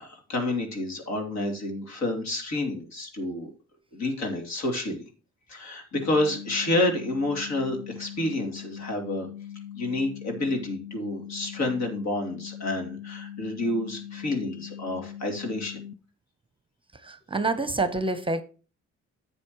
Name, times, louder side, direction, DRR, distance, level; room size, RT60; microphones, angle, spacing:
voice 1, 0.0-3.5 3.9-5.0 5.5-9.3 9.7-15.8, left 2 dB, 65° left, 3.2 m, -29 dB
sound 1, 5.9-15.9, left 10 dB, 45° left, 0.6 m, -41 dB
voice 2, 17.0-18.4, right 3 dB, 15° right, 0.8 m, -27 dB
10.5 x 7.7 x 3.1 m
cardioid pair, 90°, 30 cm